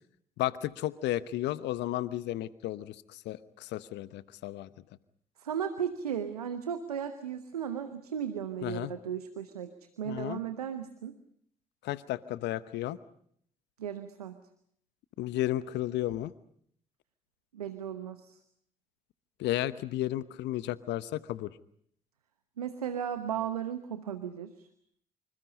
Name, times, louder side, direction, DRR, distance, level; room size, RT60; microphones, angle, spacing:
voice 1, 0.4-4.7 8.6-8.9 10.0-10.4 11.8-13.0 15.2-16.3 19.4-21.5, left 14 dB, 70° left, 16 dB, 1.0 m, -33 dB
voice 2, 5.4-9.7 10.0-11.1 13.8-14.4 17.5-18.4 22.6-24.7, right 8 dB, 90° right, 10 dB, 1.1 m, -35 dB
27.0 x 26.5 x 5.3 m, 0.65 s
hypercardioid pair, 45°, 19 cm